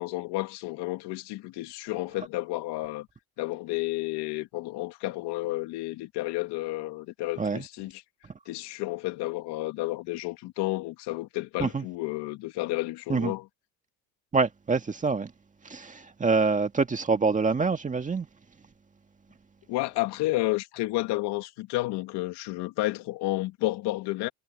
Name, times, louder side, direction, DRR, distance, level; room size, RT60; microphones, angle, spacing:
voice 1, 0.0-3.1 3.4-8.0 8.5-13.5 19.7-24.3, left 19 dB, 60° left, 2.8 m, -31 dB
voice 2, 14.3-15.3 15.6-18.3, right 4 dB, 15° right, 1.9 m, -26 dB
cardioid pair, 130°, 44 cm